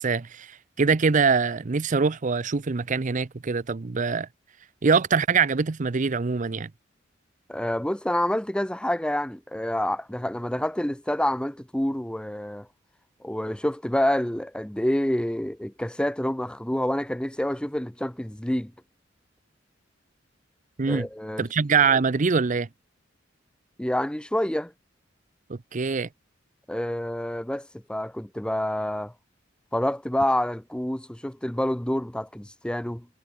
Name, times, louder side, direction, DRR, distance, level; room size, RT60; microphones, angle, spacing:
voice 1, 0.0-4.3 4.8-6.7 20.8-21.1 21.4-22.7 25.5-26.1, right 5 dB, 40° right, 0.6 m, -23 dB
voice 2, 7.5-12.7 13.2-18.7 20.9-21.5 23.8-24.7 26.7-29.1 29.7-33.1, left 1 dB, 5° left, 0.6 m, -27 dB
head